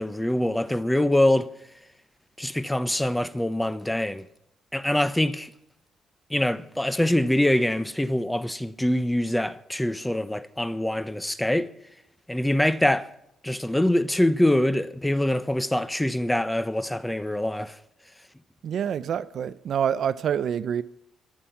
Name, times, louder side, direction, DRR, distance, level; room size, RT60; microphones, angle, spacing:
voice 1, 0.0-1.5 2.4-4.2 4.7-5.5 6.3-11.7 12.3-13.1 13.4-17.8, left 1 dB, 5° left, 1.0 m, -24 dB
voice 2, 18.6-20.8, right 8 dB, 65° right, 0.6 m, -26 dB
24.5 x 8.7 x 5.9 m
cardioid pair, 90°, 0 cm